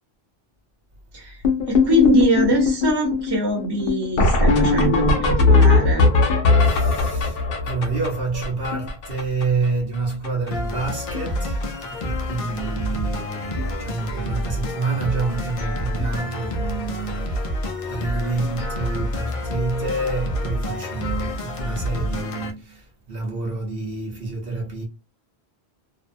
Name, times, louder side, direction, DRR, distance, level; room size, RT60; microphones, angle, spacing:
sound 1, 1.4-9.7 9.9-10.0 10.2-10.5 10.8-11.3 11.6-11.9 12.7-12.8 13.2-13.3 13.6-13.7 16.0-16.1 18.4-18.5, left 3 dB, 65° left, 0.8 m, -19 dB
voice 1, 1.7-6.1, equal, 25° right, 0.8 m, -23 dB
voice 2, 6.6-24.8, right 3 dB, 65° right, 0.9 m, -28 dB
sound 2, 10.5-22.5, left 1 dB, 45° left, 0.5 m, -28 dB
2.6 x 2.1 x 2.5 m
omnidirectional pair, 1.1 m